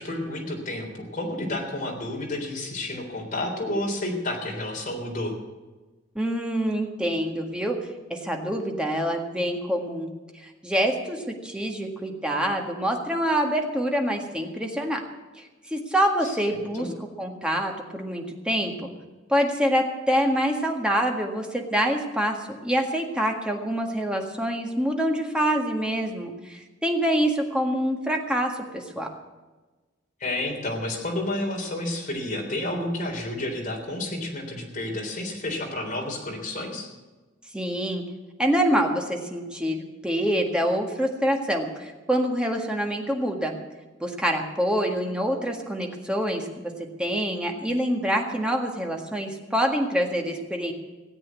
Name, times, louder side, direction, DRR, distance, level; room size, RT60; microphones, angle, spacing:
voice 1, 0.0-5.4 16.2-16.9 30.2-36.9, left 1 dB, 45° left, 0 dB, 3.6 m, -30 dB
voice 2, 6.2-7.8 8.1-10.1 10.3-15.0 15.7-16.9 17.2-18.9 19.3-29.1 37.5-38.0 38.4-43.5 44.0-46.7 47.0-50.7, equal, 5° right, 2 dB, 1.8 m, -26 dB
17.0 x 8.5 x 8.2 m, 1.2 s
head